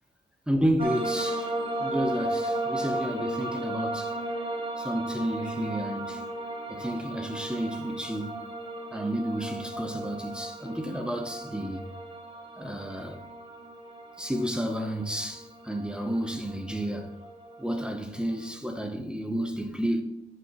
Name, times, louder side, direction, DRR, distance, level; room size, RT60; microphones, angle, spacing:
voice 1, 0.5-1.5 1.8-4.1 4.8-6.2 6.7-8.5 8.9-11.8 12.6-13.2 14.2-17.1 17.6-20.0, equal, 5° right, 0.9 m, -31 dB
sound 1, 0.8-18.5, right 1 dB, 30° right, 1.4 m, -35 dB
10.5 x 6.5 x 3.1 m
cardioid pair, 85°, 18 cm